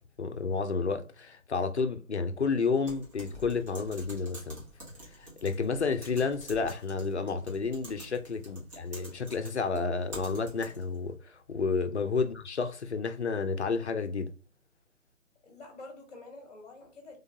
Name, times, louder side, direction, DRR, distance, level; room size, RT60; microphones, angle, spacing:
voice 1, 0.2-4.6 5.2-14.3, left 4 dB, 50° left, 0.7 m, -31 dB
Typing, 2.9-11.0, equal, 25° right, 1.3 m, -48 dB
voice 2, 15.4-17.2, left 2 dB, 25° left, 1.4 m, -48 dB
3.7 x 3.5 x 2.8 m
figure-of-eight pair, 145°, 43 cm